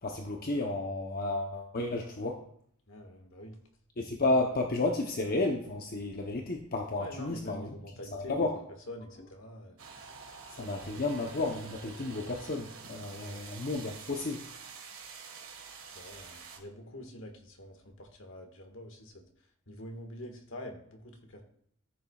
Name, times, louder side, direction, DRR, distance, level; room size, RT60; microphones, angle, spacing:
voice 1, 0.0-2.4 4.0-7.7 8.1-8.6 10.5-14.4, left 2 dB, 45° left, 2 dB, 0.9 m, -32 dB
voice 2, 2.9-3.6 6.9-8.5 8.9-9.8 10.5-11.0 13.2-13.5 15.9-19.2 19.7-21.4, left 1 dB, 65° left, 3 dB, 1.7 m, -46 dB
sound 1, 9.8-16.6, right 5 dB, 70° right, 1.6 m, -48 dB
14.0 x 7.2 x 2.4 m, 0.66 s
head